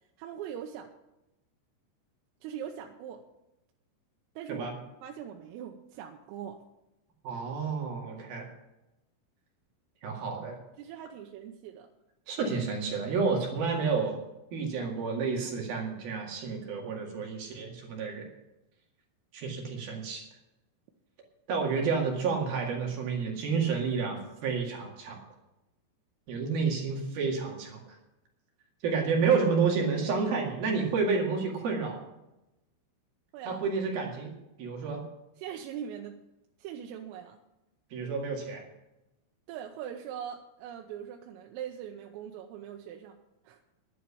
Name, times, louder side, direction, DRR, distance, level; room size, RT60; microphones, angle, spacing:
voice 1, 0.2-0.9 2.4-3.2 4.4-4.7 5.0-6.6 10.8-11.9 33.3-33.6 35.4-36.2 36.6-37.4 39.5-43.2 43.4-43.6, right 9 dB, 85° right, 2 dB, 3.5 m, -41 dB
voice 2, 7.2-8.5 10.0-10.6 12.3-14.2 14.5-18.3 19.3-20.2 21.5-25.2 26.3-27.8 28.8-32.0 33.5-34.3 34.6-35.0 37.9-38.6, right 5 dB, 55° right, 0 dB, 3.3 m, -30 dB
11.0 x 10.0 x 7.1 m, 0.94 s
omnidirectional pair, 5.8 m